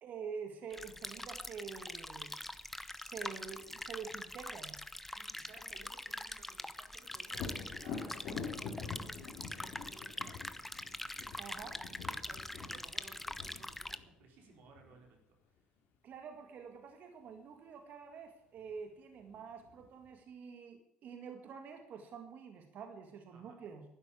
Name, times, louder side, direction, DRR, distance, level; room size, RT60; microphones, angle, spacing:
voice 1, 0.0-2.3 2.9-4.8 11.4-11.9 16.0-23.8, right 6 dB, 60° right, 5 dB, 1.9 m, -47 dB
sound 1, 0.7-14.0, left 1 dB, 5° left, 0.9 m, -44 dB
voice 2, 5.1-10.4 12.0-15.4 23.3-23.6, right 4 dB, 75° right, 2 dB, 4.4 m, -60 dB
Thunder, 7.3-15.0 18.6-18.7 19.2-20.1, left 5 dB, 80° left, 2.7 m, -46 dB
12.0 x 10.0 x 8.4 m, 0.78 s
supercardioid pair, 85°, 3 cm